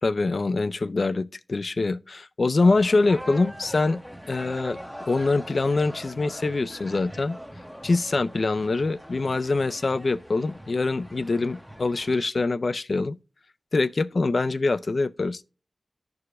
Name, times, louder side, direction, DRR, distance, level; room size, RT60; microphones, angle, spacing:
voice 1, 0.0-4.0 4.3-4.8 5.1-7.4 7.8-13.2 13.7-15.4, left 3 dB, 65° left, 0.4 m, -24 dB
sound 1, 2.6-12.2, equal, ahead, 0.8 m, -42 dB
14.0 x 4.8 x 2.4 m
cardioid pair, 40°, 0 cm